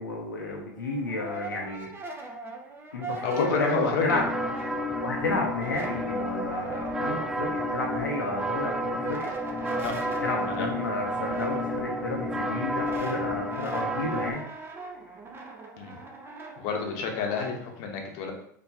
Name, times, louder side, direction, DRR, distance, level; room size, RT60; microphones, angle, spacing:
voice 1, 0.0-2.3 2.9-4.2 5.0-9.3 10.2-14.4, left 2 dB, 85° left, -1 dB, 0.7 m, -31 dB
Brass instrument, 0.7-5.1 5.4-17.6, right 3 dB, 20° right, 0.7 m, -41 dB
voice 2, 3.2-4.2 9.8-10.0 10.5-10.7 15.8-15.9 16.6-18.3, left 5 dB, 55° left, 2 dB, 0.9 m, -29 dB
sound 1, 4.1-14.3, equal, 5° right, 0.3 m, -31 dB
4.6 x 2.8 x 2.8 m, 0.69 s
hypercardioid pair, 90°, 10 cm